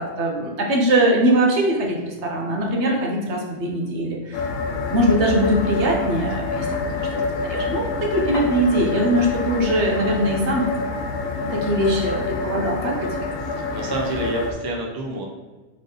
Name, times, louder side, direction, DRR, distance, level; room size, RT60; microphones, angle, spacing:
voice 1, 0.0-4.4 4.9-10.6 11.4-13.1, right 1 dB, 70° right, -1 dB, 1.2 m, -21 dB
sound 1, 4.3-14.5, left 3 dB, 85° left, 0.9 m, -27 dB
voice 2, 13.4-15.2, right 2 dB, 25° right, 0 dB, 0.5 m, -28 dB
3.8 x 3.6 x 3.9 m, 1.3 s
omnidirectional pair, 1.3 m